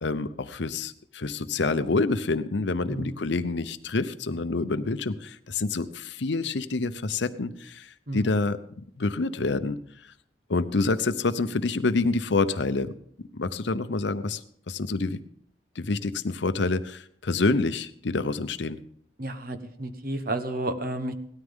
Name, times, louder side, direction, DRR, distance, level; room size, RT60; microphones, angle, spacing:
voice 1, 0.0-7.9 8.1-8.6 9.0-9.8 10.5-12.9 13.3-14.4 14.7-15.2 15.8-18.8, left 3 dB, 70° left, 12 dB, 0.7 m, -27 dB
voice 2, 2.9-3.2 8.1-8.4 19.2-21.1, right 1 dB, 50° right, 9 dB, 1.1 m, -32 dB
17.5 x 13.0 x 3.6 m, 0.65 s
head